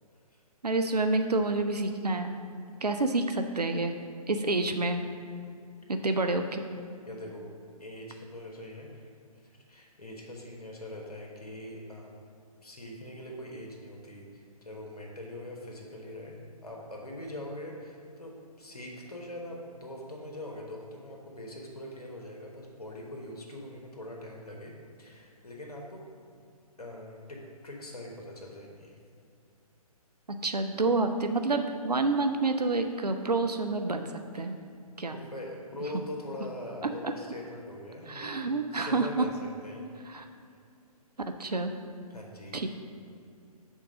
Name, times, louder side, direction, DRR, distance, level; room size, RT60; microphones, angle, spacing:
voice 1, 0.6-2.4 2.8-4.0 4.3-5.0 5.9-6.6 30.4-34.6 35.0-35.2 37.0-37.1 38.1-39.3 40.1-40.2 41.3-41.7 42.5-42.7, right 3 dB, 90° right, 6 dB, 0.5 m, -28 dB
voice 2, 7.0-7.4 7.8-9.1 9.7-12.2 12.6-24.7 25.0-26.0 26.8-29.0 34.4-34.5 35.1-39.8 42.1-42.6, left 1 dB, 75° left, -1 dB, 1.2 m, -42 dB
6.2 x 3.9 x 6.2 m, 2.4 s
figure-of-eight pair, 135°, 20 cm